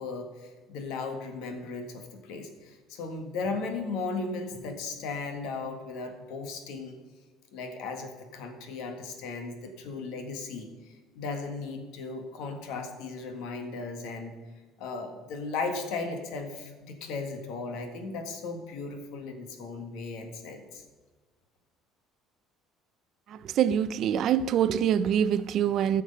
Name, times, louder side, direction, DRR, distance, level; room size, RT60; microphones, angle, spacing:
voice 1, 0.0-6.9 7.5-10.7 11.1-14.3 14.8-20.8, left 4 dB, 70° left, 1.7 m, -36 dB
voice 2, 23.3-26.0, right 9 dB, 40° right, 0.4 m, -25 dB
15.0 x 6.6 x 5.4 m
cardioid pair, 175°, 0 cm